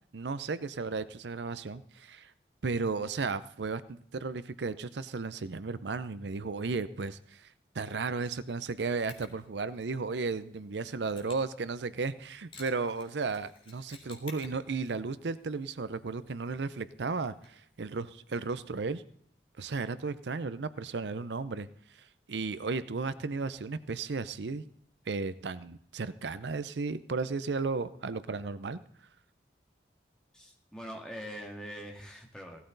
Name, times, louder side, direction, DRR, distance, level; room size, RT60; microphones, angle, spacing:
voice 1, 0.1-2.3 2.6-19.0 19.6-21.7 22.0-24.6 25.1-28.8, right 4 dB, 80° right, 15 dB, 0.6 m, -34 dB
Mechanisms, 9.1-19.0, left 4 dB, 30° left, 2.3 m, -57 dB
voice 2, 30.3-32.7, equal, 5° left, 0 dB, 2.0 m, -43 dB
16.5 x 12.5 x 3.9 m, 0.65 s
head